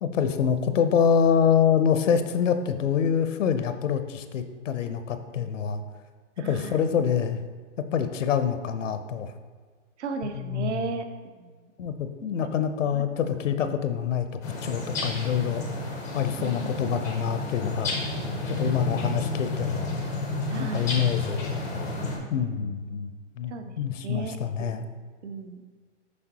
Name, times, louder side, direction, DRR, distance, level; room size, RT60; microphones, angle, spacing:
voice 1, 0.0-5.8 6.4-7.4 7.8-9.3 10.2-10.9 11.8-14.3 14.6-15.6 16.1-17.9 18.5-20.0 20.6-21.6 22.3-24.9, left 7 dB, 80° left, 9 dB, 0.7 m, -26 dB
voice 2, 6.4-6.9 10.0-11.7 12.4-12.6 12.9-13.1 16.4-16.7 18.9-19.1 20.5-21.0 22.6-22.8 23.5-24.7 25.2-25.6, right 4 dB, 70° right, 7 dB, 0.8 m, -36 dB
sound 1, 14.4-22.2, left 2 dB, 10° left, 0.4 m, -31 dB
6.3 x 5.2 x 2.9 m, 1.5 s
hypercardioid pair, 135°, 37 cm